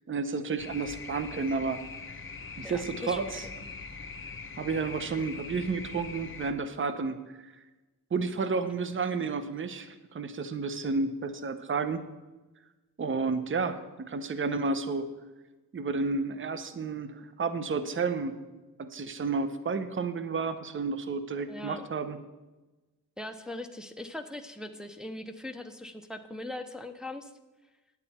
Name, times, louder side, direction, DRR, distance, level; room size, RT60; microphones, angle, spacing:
voice 1, 0.1-1.8 2.6-3.4 4.6-7.5 8.1-12.0 13.0-15.1 15.7-18.3 18.8-22.2, right 4 dB, 30° right, 11 dB, 0.8 m, -31 dB
sound 1, 0.6-6.5, left 4 dB, 30° left, 0.9 m, -42 dB
voice 2, 2.6-3.5 21.5-21.9 23.2-27.3, left 1 dB, ahead, 6 dB, 0.7 m, -40 dB
8.9 x 8.3 x 4.3 m, 1.2 s
cardioid pair, 65°, 39 cm